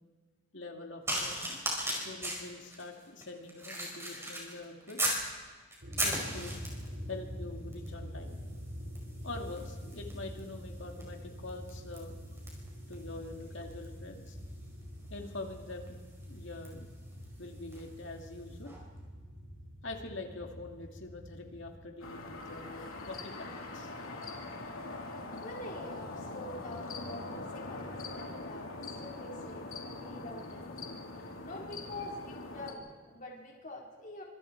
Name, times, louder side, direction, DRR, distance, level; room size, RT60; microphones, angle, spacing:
voice 1, 0.5-1.6 1.9-5.2 6.0-6.6 7.1-8.3 9.2-12.2 12.9-14.4 15.1-16.0 16.2-16.9 17.4-18.8 19.8-23.9, left 2 dB, 60° left, 3 dB, 2.4 m, -44 dB
sound 1, 1.1-5.3 5.7-7.0 7.7-8.0 8.2-17.9 18.6-18.8, right 1 dB, 15° right, 5.2 m, -39 dB
sound 2, 5.8-21.8, equal, 65° right, 5.4 m, -45 dB
sound 3, 22.0-32.7, left 2 dB, 90° left, 3.0 m, -42 dB
voice 2, 25.4-30.7 31.1-34.2, left 1 dB, 40° left, -2 dB, 4.4 m, -46 dB
25.5 x 25.5 x 4.6 m, 1.4 s
head